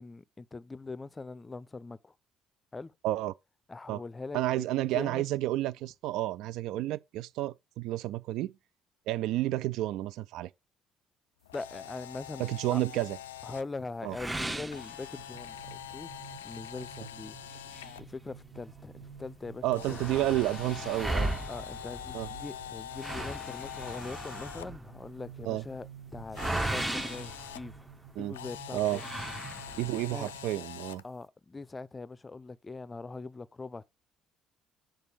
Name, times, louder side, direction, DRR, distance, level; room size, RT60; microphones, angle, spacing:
voice 1, 0.0-2.1 2.7-2.9 3.7-4.7 4.9-5.3 11.5-12.4 12.7-12.8 13.4-16.2 16.4-17.4 18.0-20.1 21.5-27.9 28.2-29.0 30.0-30.3 31.0-33.8, left 3 dB, 25° left, 0.5 m, -42 dB
voice 2, 4.3-8.5 9.1-10.5 12.4-13.2 14.0-14.2 19.6-21.3 22.1-22.3 25.5-25.6 28.2-28.4 28.7-29.0 29.8-31.0, right 15 dB, 65° right, 0.3 m, -31 dB
Camera, 11.4-13.6 14.7-18.0 19.7-24.6 26.3-27.6 28.3-31.0, left 11 dB, 85° left, 0.3 m, -44 dB
sound 1, 14.1-15.6 16.0-16.1 16.6-16.7 17.5-18.8 19.1-19.2 19.4-28.2 28.9-30.0, right 1 dB, 15° right, 0.7 m, -37 dB
sound 2, 15.1-30.6, right 7 dB, 45° right, 1.2 m, -52 dB
6.8 x 3.8 x 6.2 m
hypercardioid pair, 50°, 0 cm